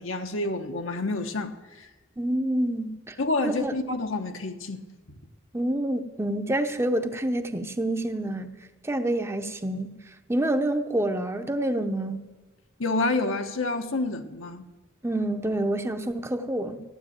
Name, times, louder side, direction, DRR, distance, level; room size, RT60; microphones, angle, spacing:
voice 1, 0.0-1.9 3.2-4.8 12.8-14.6, left 2 dB, 75° left, 1.3 m, -28 dB
voice 2, 2.2-3.2 3.4-3.8 5.5-8.5 8.8-10.0 10.3-12.3 15.0-16.8, right 1 dB, 15° right, 0.8 m, -27 dB
14.5 x 9.8 x 8.8 m
head